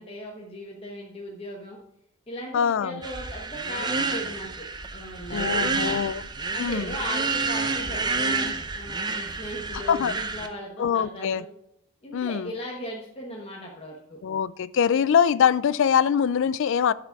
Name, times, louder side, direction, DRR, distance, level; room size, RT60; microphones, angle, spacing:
voice 1, 0.0-1.8 2.3-4.7 4.9-6.0 6.5-11.5 12.0-14.2, equal, 25° left, 1.1 m, -38 dB
voice 2, 2.5-3.0 5.3-6.2 6.6-6.9 9.9-10.1 10.8-11.4 12.1-12.5 14.2-16.9, left 7 dB, 60° left, 0.3 m, -23 dB
sound 1, 3.0-10.5, right 3 dB, 20° right, 0.6 m, -29 dB
11.5 x 4.9 x 4.6 m
head